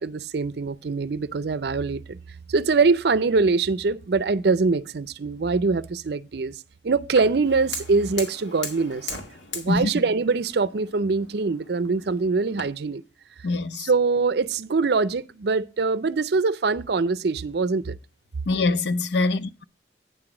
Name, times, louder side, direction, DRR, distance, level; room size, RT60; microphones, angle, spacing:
voice 1, 0.0-2.2 2.5-9.1 9.5-13.0 13.7-18.0, right 4 dB, 60° right, 0.5 m, -23 dB
Fire, 7.2-12.6, left 4 dB, 85° left, 2.0 m, -39 dB
voice 2, 13.4-13.9 18.5-19.5, left 3 dB, 70° left, 0.5 m, -23 dB
9.3 x 5.9 x 4.9 m
head